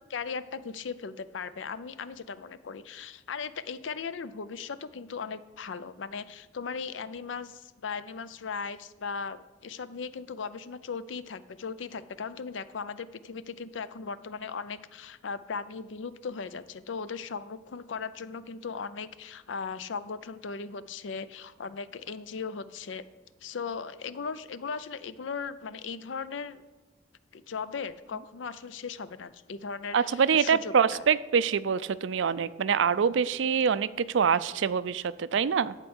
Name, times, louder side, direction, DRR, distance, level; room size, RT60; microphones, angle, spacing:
voice 1, 0.1-23.0 23.4-26.6 27.3-31.0, left 5 dB, 85° left, 15 dB, 0.5 m, -38 dB
voice 2, 29.9-35.8, right 6 dB, 85° right, 16 dB, 0.4 m, -25 dB
12.0 x 4.5 x 7.9 m, 1.3 s
head